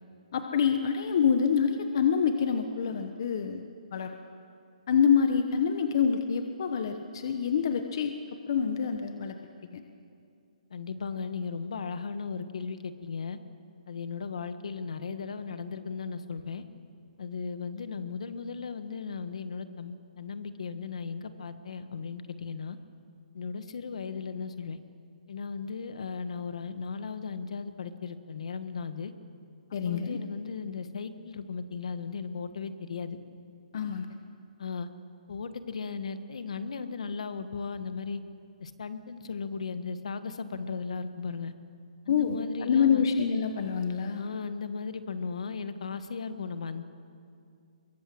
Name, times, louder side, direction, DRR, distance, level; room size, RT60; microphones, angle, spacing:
voice 1, 0.3-3.6 3.9-4.1 4.9-8.1 8.5-9.3 9.7-9.8 29.7-30.2 33.7-34.1 42.1-44.3, left 7 dB, 35° left, 6 dB, 1.0 m, -26 dB
voice 2, 10.7-13.4 13.9-16.6 17.2-22.8 23.3-24.8 25.3-29.1 29.7-33.2 34.6-34.9 35.3-38.2 38.6-41.5 42.0-43.1 44.2-46.8, left 5 dB, 55° left, 10 dB, 1.5 m, -36 dB
23.5 x 23.0 x 7.7 m, 2.4 s
hypercardioid pair, 175°, 4 cm